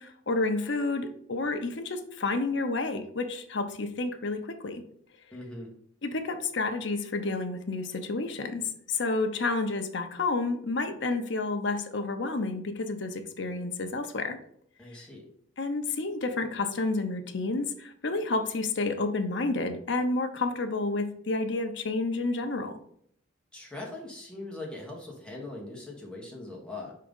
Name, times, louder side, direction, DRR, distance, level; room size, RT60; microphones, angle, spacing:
voice 1, 0.0-4.8 6.0-8.6 8.9-14.4 15.6-22.8, left 3 dB, 55° left, 6 dB, 0.7 m, -30 dB
voice 2, 5.3-5.7 14.8-15.3 23.5-27.0, left 2 dB, 5° left, -2 dB, 1.3 m, -41 dB
4.8 x 3.8 x 5.3 m, 0.66 s
head